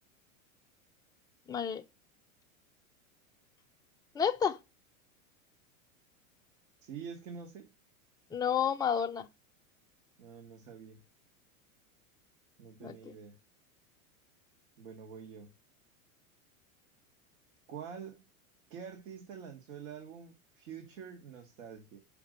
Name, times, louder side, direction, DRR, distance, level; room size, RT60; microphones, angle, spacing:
voice 1, 1.5-1.8 4.1-4.6 8.3-9.3 12.8-13.1, left 7 dB, 10° left, 0.5 m, -30 dB
voice 2, 6.8-7.7 10.2-11.0 12.6-13.4 14.8-15.5 17.7-18.3 18.7-22.0, right 7 dB, 70° right, 1.8 m, -46 dB
5.7 x 5.2 x 6.6 m
supercardioid pair, 120°, 41 cm